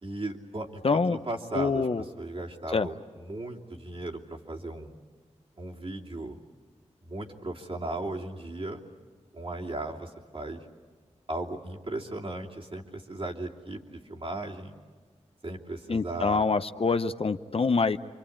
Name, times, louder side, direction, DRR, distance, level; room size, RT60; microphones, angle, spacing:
voice 1, 0.0-5.0 5.6-6.4 7.0-8.8 9.3-10.7 11.3-14.7 15.4-16.5, right 2 dB, 50° right, -1 dB, 2.9 m, -36 dB
voice 2, 0.8-1.2 1.5-2.0 2.7-2.9 15.9-18.0, left 4 dB, 50° left, 10 dB, 0.8 m, -25 dB
27.0 x 24.5 x 8.7 m, 1.5 s
wide cardioid pair, 60°, 12 cm